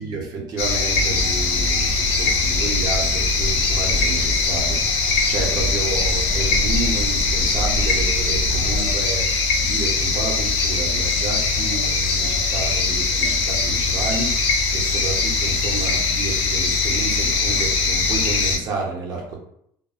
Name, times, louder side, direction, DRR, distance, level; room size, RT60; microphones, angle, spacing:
voice 1, 0.0-19.4, right 4 dB, 40° right, -1 dB, 0.7 m, -30 dB
sound 1, 0.6-18.6, left 4 dB, 75° left, 0.5 m, -21 dB
sound 2, 0.9-8.9, equal, 45° left, 1.0 m, -29 dB
2.6 x 2.1 x 2.3 m, 0.71 s
cardioid pair, 135°, 10 cm